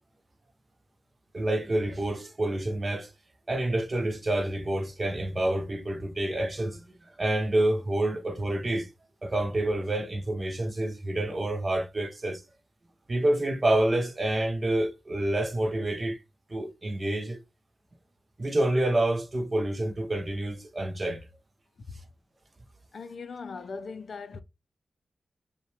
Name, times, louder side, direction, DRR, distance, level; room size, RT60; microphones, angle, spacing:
voice 1, 1.3-3.1 3.5-8.9 9.2-12.4 13.1-16.2 16.5-17.4 18.4-21.3, right 1 dB, 30° right, 0.6 m, -28 dB
voice 2, 22.9-24.4, left 4 dB, 60° left, 0.5 m, -39 dB
5.5 x 2.2 x 3.2 m
wide cardioid pair, 160°, 0 cm